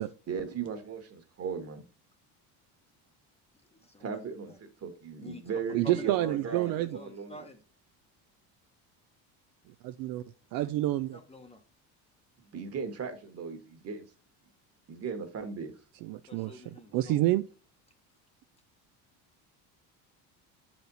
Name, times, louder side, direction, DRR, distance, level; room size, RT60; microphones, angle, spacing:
voice 1, 0.3-1.8 4.0-7.4 12.5-14.1 14.9-15.7, right 6 dB, 40° right, 1.5 m, -37 dB
voice 2, 3.7-4.6 5.2-5.4 5.8-7.6 11.1-11.6 16.3-17.2, left 2 dB, 15° left, 0.9 m, -47 dB
voice 3, 5.7-6.9 9.8-10.2 10.5-11.2 16.0-16.5 16.9-17.4, right 15 dB, 60° right, 0.5 m, -28 dB
7.9 x 4.4 x 4.0 m
cardioid pair, 120°, 39 cm